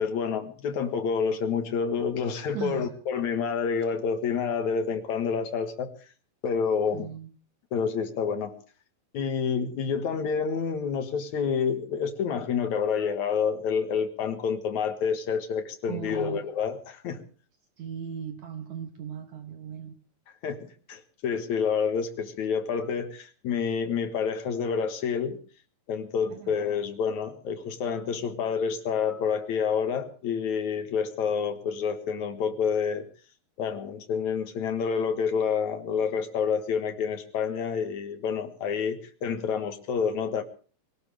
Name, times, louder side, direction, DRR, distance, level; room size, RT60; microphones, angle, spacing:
voice 1, 0.0-5.9 6.4-7.1 7.7-8.6 9.1-17.2 20.4-20.6 20.9-25.4 25.9-33.1 33.6-40.4, left 6 dB, 60° left, 7 dB, 2.9 m, -28 dB
voice 2, 2.5-2.9 6.9-7.3 15.9-16.5 17.8-20.0 26.3-26.6, right 8 dB, 65° right, 6 dB, 2.3 m, -37 dB
23.5 x 18.0 x 3.4 m, 0.40 s
omnidirectional pair, 3.9 m